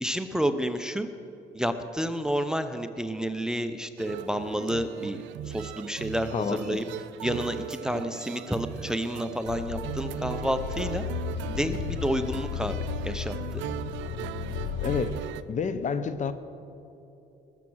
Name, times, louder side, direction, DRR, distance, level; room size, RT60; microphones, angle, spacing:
voice 1, 0.0-1.1 1.5-5.2 5.5-6.8 7.2-11.0 11.5-13.6, equal, 5° right, 9 dB, 0.7 m, -30 dB
sound 1, 4.0-15.4, right 11 dB, 90° right, 0.5 m, -38 dB
voice 2, 6.3-6.8 14.8-15.2 15.5-16.3, left 5 dB, 40° left, 12 dB, 0.8 m, -29 dB
sound 2, 9.5-15.2, left 8 dB, 75° left, 0.6 m, -34 dB
20.0 x 7.5 x 6.3 m, 2.9 s
cardioid pair, 95°, 19 cm